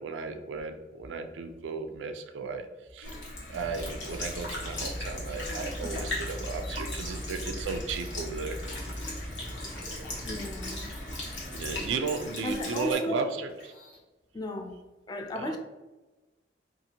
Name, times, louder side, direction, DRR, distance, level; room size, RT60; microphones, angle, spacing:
voice 1, 0.0-2.7 2.9-3.1 3.5-8.6 11.5-13.7 15.4-15.6, right 4 dB, 90° right, 7 dB, 0.4 m, -35 dB
Sink (filling or washing) / Liquid, 3.0-12.9, left 2 dB, 90° left, 0.9 m, -39 dB
sound 1, 3.5-11.9, equal, 5° left, 0.8 m, -40 dB
sound 2, 4.0-4.8 5.1-7.2 7.7-9.0 9.5-14.0, left 2 dB, 55° left, 0.7 m, -52 dB
voice 2, 10.2-10.9 12.4-13.3 14.3-14.8 15.1-15.6, left 1 dB, 25° left, 4 dB, 0.3 m, -35 dB
2.7 x 2.4 x 2.8 m, 1.1 s
head